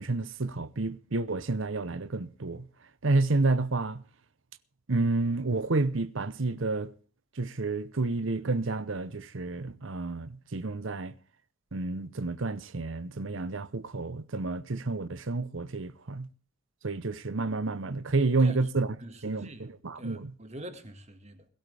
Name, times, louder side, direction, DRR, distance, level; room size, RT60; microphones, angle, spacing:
voice 1, 0.0-2.7 3.0-4.0 4.9-6.9 7.4-11.1 11.7-16.3 16.8-19.0 19.2-20.3, right 3 dB, 65° right, 0.8 m, -30 dB
voice 2, 19.0-21.5, right 1 dB, 30° right, 1.9 m, -45 dB
22.0 x 12.5 x 3.4 m
head